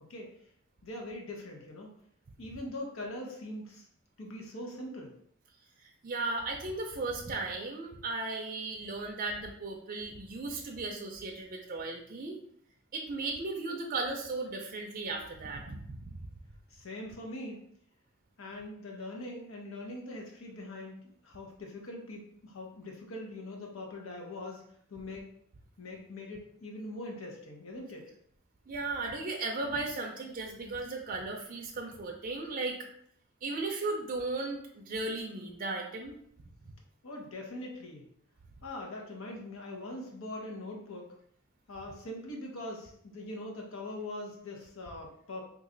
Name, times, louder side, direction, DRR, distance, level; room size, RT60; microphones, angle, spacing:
voice 1, 0.8-1.9 2.4-3.9 4.2-5.1 16.7-17.6 18.4-24.6 24.9-25.3 25.8-28.1 37.0-38.1 38.6-41.1 41.7-45.4, left 1 dB, 85° left, 1 dB, 0.8 m, -42 dB
voice 2, 5.8-12.4 12.9-16.3 28.7-32.8 33.4-36.2, right 3 dB, 40° right, 1 dB, 0.4 m, -36 dB
3.1 x 2.4 x 3.8 m, 0.68 s
head